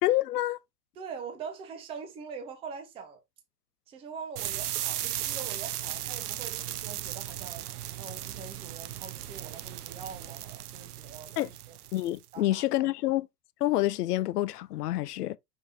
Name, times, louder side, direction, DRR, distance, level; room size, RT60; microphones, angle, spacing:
voice 1, 0.0-0.6 11.4-11.5 11.9-13.3 13.6-15.4, left 15 dB, 70° left, 0.5 m, -27 dB
voice 2, 1.0-3.2 3.9-7.7 8.0-11.8 12.3-12.9, right 6 dB, 10° right, 0.6 m, -43 dB
sound 1, 4.4-12.3, right 13 dB, 65° right, 0.6 m, -36 dB
5.5 x 2.7 x 3.3 m
hypercardioid pair, 135°, 49 cm